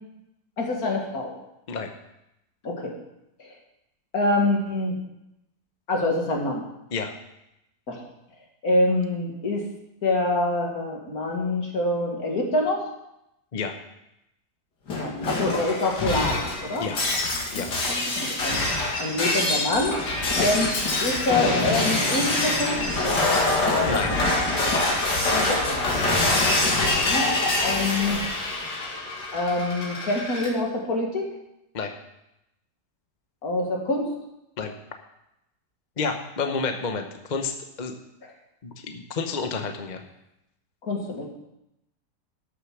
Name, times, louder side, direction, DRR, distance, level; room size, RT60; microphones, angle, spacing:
voice 1, 0.6-1.3 2.6-2.9 4.1-4.9 5.9-6.6 7.9-8.0 8.6-9.6 10.0-12.8 14.9-16.9 17.9-18.6 19.0-20.0 20.4-20.7 21.0-23.1 25.3-26.1 27.1-27.3 27.6-28.2 29.3-31.3 33.4-34.1 40.8-41.3, left 2 dB, 60° left, 0 dB, 2.5 m, -26 dB
Shatter, 14.9-30.5, left 2 dB, 80° left, 2.7 m, -25 dB
voice 2, 23.9-24.2 26.3-26.5 31.7-31.9 34.6-34.7 36.0-37.9 38.6-40.0, left 4 dB, 35° left, 5 dB, 0.8 m, -30 dB
12.5 x 6.8 x 6.1 m, 0.86 s
omnidirectional pair, 1.8 m